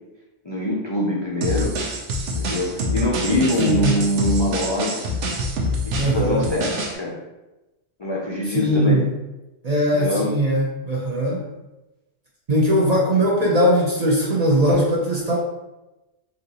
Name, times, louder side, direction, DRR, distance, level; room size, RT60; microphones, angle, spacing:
voice 1, 0.4-1.7 2.4-5.0 5.8-7.2 8.0-9.0 9.9-10.3, left 1 dB, 50° left, -4 dB, 0.3 m, -24 dB
sound 1, 1.4-7.0, left 1 dB, 90° right, 0.9 m, -26 dB
voice 2, 3.6-4.0 6.0-6.5 8.5-9.1 9.6-11.4 12.5-15.4, equal, 50° right, -4 dB, 0.5 m, -20 dB
3.8 x 2.5 x 2.8 m, 1.0 s
omnidirectional pair, 1.2 m